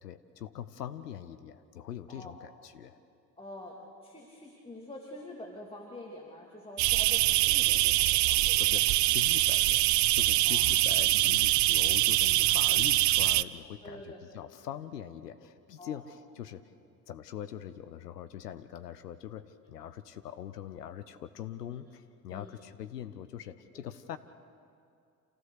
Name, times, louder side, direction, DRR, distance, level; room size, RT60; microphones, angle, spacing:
voice 1, 0.0-3.0 8.6-16.6 17.1-24.2, left 10 dB, 85° left, 11 dB, 0.8 m, -42 dB
voice 2, 3.4-8.8 10.4-10.6 12.6-12.8 13.8-14.2 15.8-16.0 22.3-22.5 23.7-23.8, left 1 dB, 10° left, -2 dB, 2.9 m, -46 dB
sound 1, 6.8-13.4, right 17 dB, 40° right, 0.5 m, -24 dB
28.5 x 15.5 x 6.7 m, 2.4 s
figure-of-eight pair, 55°, 46 cm